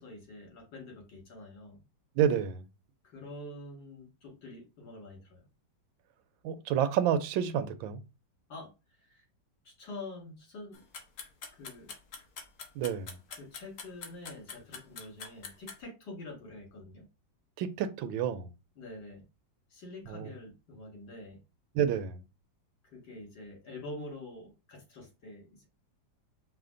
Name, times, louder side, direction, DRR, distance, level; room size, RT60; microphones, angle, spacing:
voice 1, 0.0-1.8 3.0-5.4 8.5-8.7 9.0-9.2 9.6-10.8 11.5-11.9 13.3-17.0 18.8-19.2 19.7-21.4 22.9-25.7, left 2 dB, 70° left, 2.7 m, -46 dB
voice 2, 2.2-2.6 6.4-8.0 12.8-13.2 17.6-18.5 20.1-20.3 21.7-22.2, right 9 dB, 80° right, 1.4 m, -29 dB
sound 1, 10.7-15.8, left 5 dB, 55° left, 1.2 m, -44 dB
5.0 x 2.7 x 3.7 m
omnidirectional pair, 2.1 m